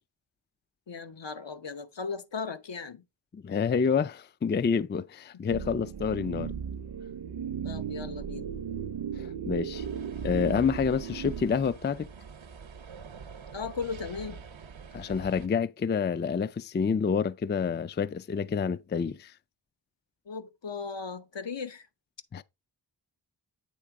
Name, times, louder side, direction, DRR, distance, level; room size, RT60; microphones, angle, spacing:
voice 1, 0.9-3.0 7.6-8.5 13.5-14.4 20.3-21.9, left 5 dB, 70° left, 0.9 m, -37 dB
voice 2, 3.3-6.5 9.2-9.9 10.2-12.1 14.9-19.3 22.3-22.4, left 6 dB, 25° left, 0.3 m, -28 dB
sound 1, 5.5-11.4, right 7 dB, 60° right, 0.6 m, -36 dB
sound 2, 9.7-15.5, right 6 dB, 90° right, 0.9 m, -46 dB
8.5 x 3.3 x 4.8 m
wide cardioid pair, 60°, 45 cm